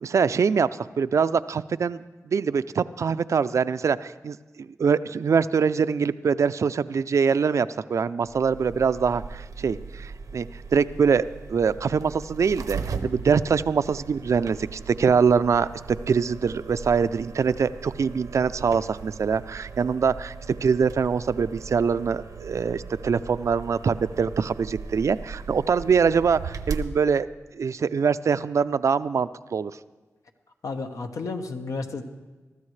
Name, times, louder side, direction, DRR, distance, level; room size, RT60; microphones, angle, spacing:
voice 1, 0.0-10.5 10.7-15.7 16.1-20.3 20.6-27.3 27.5-29.7, right 6 dB, 65° right, 14 dB, 0.4 m, -24 dB
sound 1, 8.3-26.9, right 5 dB, 85° right, 0.8 m, -38 dB
voice 2, 30.6-32.0, left 3 dB, 75° left, 5 dB, 1.1 m, -32 dB
22.5 x 13.0 x 3.2 m, 1.2 s
cardioid pair, 75°, 6 cm